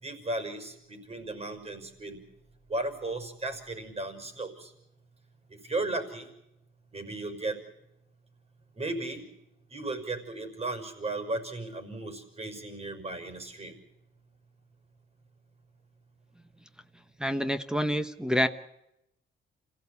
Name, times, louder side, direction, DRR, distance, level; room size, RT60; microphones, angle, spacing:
voice 1, 0.0-2.2 2.7-4.7 5.5-6.3 6.9-7.6 8.8-9.2 9.7-13.7, right 2 dB, 30° right, 6 dB, 6.0 m, -35 dB
voice 2, 17.2-18.5, equal, 5° right, 6 dB, 1.2 m, -27 dB
26.5 x 17.0 x 8.6 m, 0.85 s
cardioid pair, 90°, 20 cm